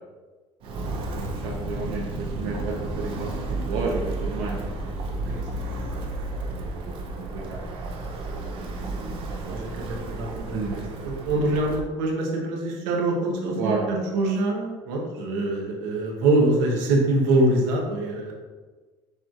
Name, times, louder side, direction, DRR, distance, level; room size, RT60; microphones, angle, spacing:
Walk footsteps, 0.6-11.9, right 2 dB, 45° right, 0.6 m, -32 dB
voice 1, 1.1-3.3 3.7-4.7 6.5-7.6 9.5-9.6 10.5-10.8 13.6-13.8, right 4 dB, 70° right, -4 dB, 0.8 m, -31 dB
voice 2, 5.2-5.9 9.5-18.4, right 2 dB, 90° right, -1 dB, 1.1 m, -25 dB
6.7 x 3.1 x 2.5 m, 1.3 s
cardioid pair, 155°, 13 cm